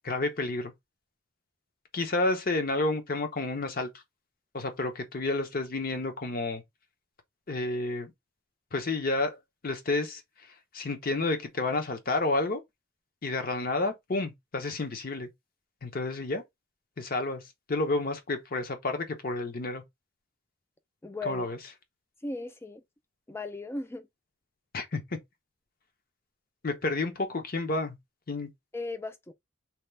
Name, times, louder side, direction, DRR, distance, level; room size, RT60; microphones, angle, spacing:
voice 1, 0.0-0.7 1.9-3.9 4.5-6.6 7.5-8.1 8.7-9.4 9.6-10.2 10.7-12.6 13.2-15.3 15.8-16.4 17.0-17.4 17.7-19.8 21.2-21.6 24.7-25.2 26.6-28.0 28.3-28.5, left 2 dB, 45° left, 0.7 m, -30 dB
voice 2, 21.0-21.5 22.2-22.8 23.3-24.1 28.7-29.3, left 2 dB, 10° left, 0.3 m, -36 dB
2.9 x 2.3 x 3.1 m
head